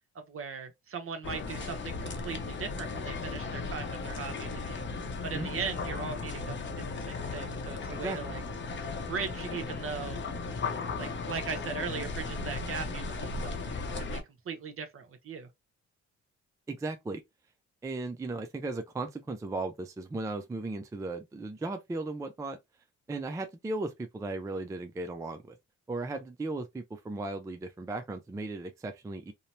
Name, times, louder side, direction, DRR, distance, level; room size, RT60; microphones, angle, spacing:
voice 1, 0.1-4.9 5.2-8.4 9.1-10.2 11.0-15.5, right 6 dB, 45° right, 0.8 m, -39 dB
sound 1, 1.2-14.2, left 4 dB, 40° left, 0.7 m, -36 dB
voice 2, 16.7-17.2 17.8-22.6 23.1-25.6 25.9-29.3, right 2 dB, 10° right, 0.3 m, -36 dB
2.9 x 2.0 x 2.6 m
cardioid pair, 90°, 30 cm